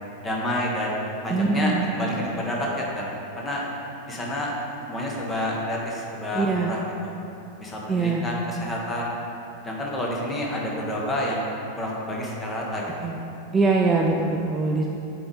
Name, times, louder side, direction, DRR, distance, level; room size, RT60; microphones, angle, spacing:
voice 1, 0.2-3.6 4.1-4.5 4.9-6.8 7.6-9.1 9.6-11.5 11.8-13.1, left 1 dB, 15° left, -3 dB, 1.3 m, -29 dB
voice 2, 1.3-1.9 6.3-6.7 7.9-8.2 13.0-13.2 13.5-14.9, right 3 dB, 15° right, -1 dB, 0.4 m, -22 dB
7.7 x 4.9 x 3.9 m, 2.9 s
figure-of-eight pair, 90°, 0 cm